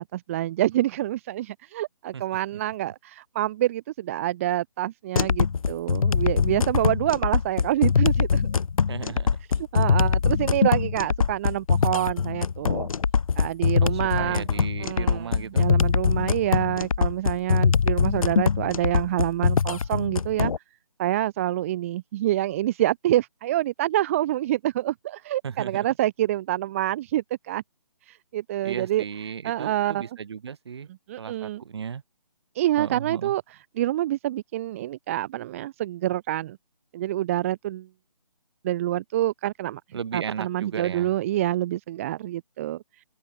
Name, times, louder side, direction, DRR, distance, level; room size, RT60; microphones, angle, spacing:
voice 1, 0.0-8.5 9.5-12.9 13.4-20.5 21.0-27.6 28.1-29.0 29.4-30.2 31.1-31.6 32.5-36.6 36.9-37.9 38.6-39.8 40.1-42.8, right 14 dB, 20° right, 2.2 m, -27 dB
sound 1, 5.2-20.6, left 6 dB, 60° left, 0.7 m, -23 dB
voice 2, 8.9-9.3 13.8-15.6 25.4-25.9 28.6-30.9 31.2-32.0 32.8-33.3 39.9-41.1, right 7 dB, 40° right, 4.0 m, -35 dB
figure-of-eight pair, 165°, 20 cm